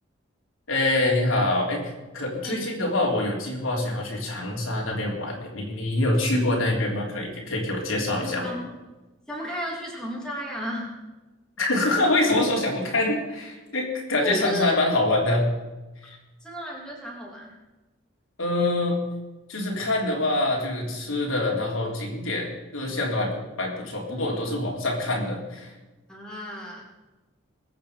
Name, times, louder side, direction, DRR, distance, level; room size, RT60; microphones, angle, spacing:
voice 1, 0.7-1.8 2.1-8.5 11.6-15.5 16.0-16.2 18.4-19.0 19.5-25.7, left 2 dB, 90° left, -2 dB, 3.8 m, -25 dB
voice 2, 8.0-8.7 9.3-10.9 14.2-14.8 16.4-17.6 24.1-24.6 26.1-26.8, equal, 5° left, -3 dB, 3.1 m, -34 dB
21.5 x 8.5 x 5.3 m, 1.1 s
head